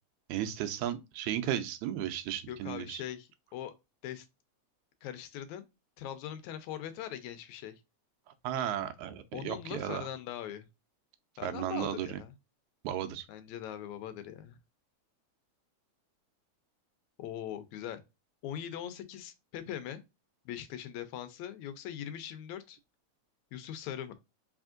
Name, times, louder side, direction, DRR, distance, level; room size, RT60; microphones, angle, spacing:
voice 1, 0.3-3.0 8.4-10.1 11.4-12.2 12.8-13.3, right 11 dB, 80° right, 1.8 m, -34 dB
voice 2, 2.5-3.7 4.0-4.3 5.0-5.7 6.0-7.8 9.3-10.7 11.4-12.3 13.3-14.6 17.2-18.0 18.4-20.0 20.5-22.8 23.5-24.1, left 10 dB, 80° left, 1.9 m, -41 dB
4.3 x 3.4 x 2.4 m
omnidirectional pair, 3.4 m